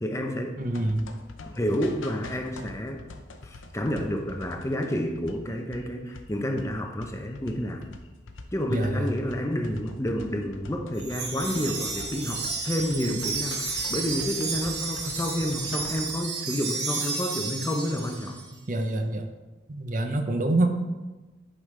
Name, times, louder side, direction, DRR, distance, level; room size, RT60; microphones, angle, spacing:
voice 1, 0.0-0.6 1.5-3.0 3.4-7.8 8.5-18.4, equal, 15° left, 4 dB, 0.6 m, -29 dB
sound 1, 0.6-16.2, left 2 dB, 90° left, 0.7 m, -44 dB
voice 2, 0.6-1.1 8.7-9.1 18.7-19.3 19.7-20.7, right 1 dB, 40° right, 6 dB, 0.7 m, -26 dB
Wind chime, 11.0-18.5, right 4 dB, 60° right, 1.2 m, -32 dB
11.0 x 5.1 x 3.2 m, 1.2 s
head